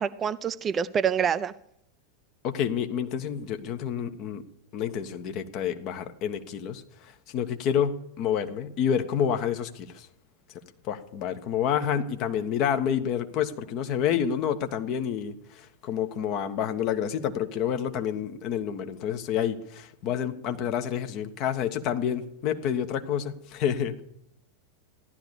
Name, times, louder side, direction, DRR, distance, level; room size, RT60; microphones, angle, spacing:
voice 1, 0.0-1.5, right 7 dB, 25° right, 13 dB, 0.6 m, -26 dB
voice 2, 2.4-4.4 4.7-10.1 10.8-24.0, left 8 dB, 40° left, 8 dB, 1.3 m, -29 dB
14.5 x 11.5 x 6.9 m, 0.77 s
figure-of-eight pair, 90°, 0 cm